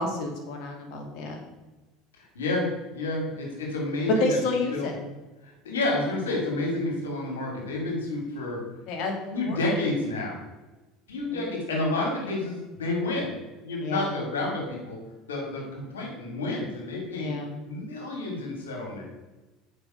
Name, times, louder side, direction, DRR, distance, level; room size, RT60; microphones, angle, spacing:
voice 1, 0.0-1.4 4.1-4.9 8.9-9.6 11.3-11.4 13.8-14.1 17.1-17.6, left 2 dB, 60° left, 2 dB, 2.0 m, -29 dB
voice 2, 2.2-4.4 4.7-4.9 5.4-8.6 9.3-10.4 11.1-13.3 13.6-15.0 15.3-17.3 17.7-19.1, left 2 dB, 90° left, -1 dB, 2.4 m, -30 dB
6.8 x 5.5 x 5.0 m, 1.1 s
hypercardioid pair, 80°, 0 cm